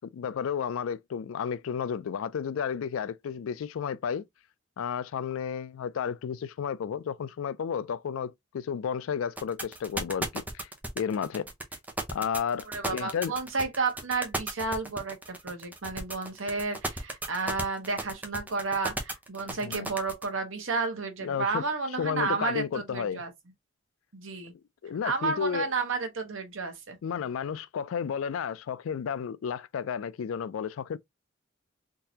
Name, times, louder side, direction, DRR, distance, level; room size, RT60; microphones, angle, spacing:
voice 1, 0.1-4.3 4.8-10.7 11.0-11.5 12.1-13.3 19.5-19.9 21.2-21.6 22.0-23.2 24.8-25.7 27.0-31.0, left 7 dB, 90° left, 0.3 m, -32 dB
sound 1, 9.4-20.3, right 2 dB, 10° right, 0.6 m, -34 dB
voice 2, 12.7-23.3 24.1-24.5 25.0-27.0, right 4 dB, 80° right, 1.1 m, -31 dB
3.7 x 2.6 x 2.8 m
head